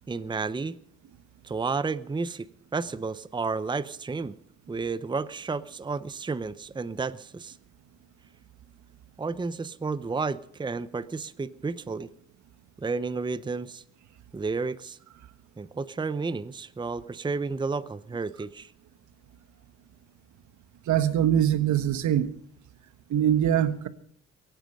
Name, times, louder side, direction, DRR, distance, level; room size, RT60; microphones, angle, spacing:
voice 1, 0.1-0.8 1.4-2.5 2.7-4.3 4.7-7.6 9.2-12.1 12.8-13.8 14.3-15.0 15.6-18.7, right 4 dB, 15° right, 0.7 m, -31 dB
voice 2, 20.9-22.3 23.1-23.9, right 10 dB, 75° right, 1.3 m, -23 dB
23.0 x 9.2 x 6.6 m
cardioid pair, 90°, 30 cm